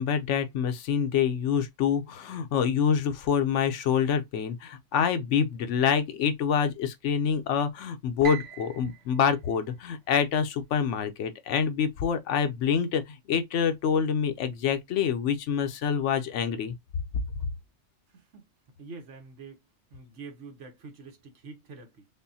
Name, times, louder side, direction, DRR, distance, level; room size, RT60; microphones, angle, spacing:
voice 1, 0.0-16.7, left 7 dB, 80° left, 1.0 m, -26 dB
Piano, 8.2-10.5, right 11 dB, 60° right, 1.3 m, -42 dB
voice 2, 18.1-18.5 18.8-19.6 19.9-22.1, right 4 dB, 80° right, 1.3 m, -46 dB
5.4 x 2.2 x 2.6 m
omnidirectional pair, 1.2 m